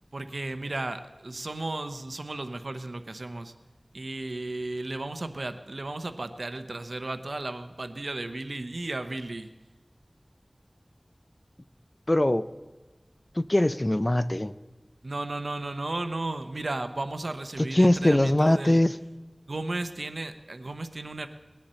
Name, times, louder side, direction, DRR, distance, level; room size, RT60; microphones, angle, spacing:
voice 1, 0.1-3.5 3.9-9.5 15.0-18.8 19.5-21.3, right 2 dB, 85° right, 9 dB, 0.8 m, -34 dB
voice 2, 12.1-12.5 13.4-14.5 17.7-18.9, left 1 dB, 35° left, 14 dB, 0.5 m, -21 dB
20.0 x 10.5 x 4.3 m, 1.2 s
wide cardioid pair, 40°, 0 cm